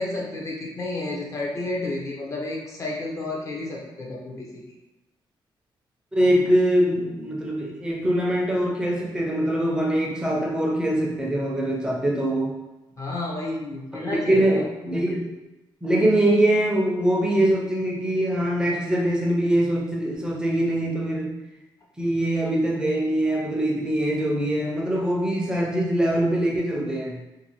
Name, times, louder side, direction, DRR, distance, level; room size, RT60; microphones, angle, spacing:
voice 1, 0.0-4.6 13.0-14.6, left 2 dB, 35° left, -3 dB, 0.6 m, -31 dB
voice 2, 6.1-12.5 14.1-15.4 15.8-21.4 22.0-27.2, right 1 dB, 10° right, -3 dB, 0.5 m, -23 dB
2.6 x 2.5 x 2.9 m, 1.0 s
cardioid pair, 145°, 9 cm